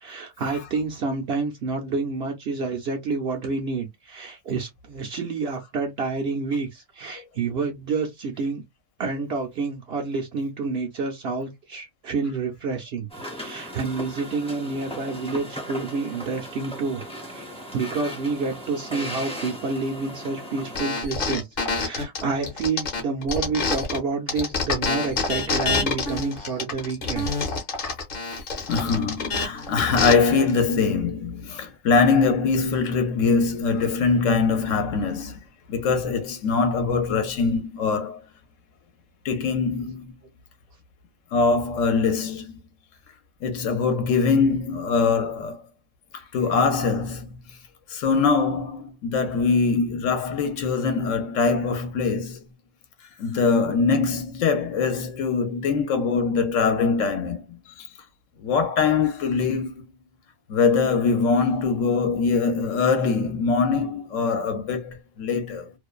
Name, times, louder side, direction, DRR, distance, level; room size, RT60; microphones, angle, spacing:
voice 1, 0.0-8.6 9.0-13.1 13.3-17.0 17.3-17.5 17.7-27.3, right 4 dB, 60° right, 0.7 m, -29 dB
sound 1, 13.1-20.8, equal, 5° left, 0.5 m, -37 dB
sound 2, 20.7-24.0 24.3-30.1, left 4 dB, 45° left, 0.8 m, -27 dB
voice 2, 28.7-35.4 35.7-38.2 39.2-40.1 41.3-42.6 43.4-45.6 46.1-47.4 47.9-52.4 53.2-57.9 58.4-59.8 60.5-65.7, left 4 dB, 70° left, 1.0 m, -23 dB
2.5 x 2.2 x 2.3 m
omnidirectional pair, 1.5 m